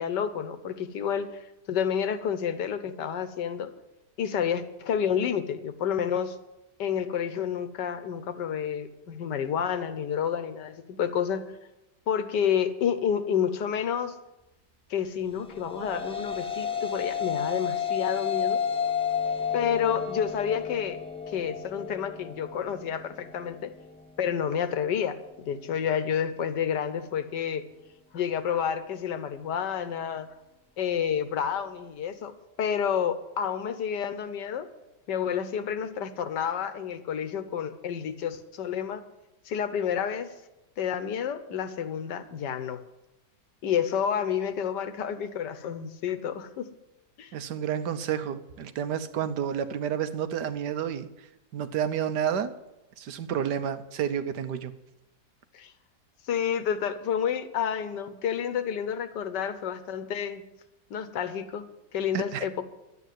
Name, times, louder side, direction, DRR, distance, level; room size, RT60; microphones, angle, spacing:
voice 1, 0.0-1.3 1.7-3.7 4.2-6.4 6.8-11.4 12.1-14.1 14.9-18.6 19.5-21.0 21.3-23.7 24.2-27.6 28.1-30.3 30.8-32.3 32.6-34.7 35.1-39.0 39.4-40.3 40.8-42.8 43.6-46.7 47.2-47.3 55.5-55.7 56.3-60.4 60.9-62.6, left 8 dB, 80° left, 11 dB, 1.6 m, -29 dB
sound 1, 15.4-24.0, left 7 dB, 5° left, 0.7 m, -31 dB
voice 2, 47.3-51.1 51.5-52.5 53.0-54.7 62.1-62.5, right 8 dB, 75° right, 11 dB, 1.4 m, -30 dB
12.0 x 8.5 x 9.2 m, 0.95 s
omnidirectional pair, 1.9 m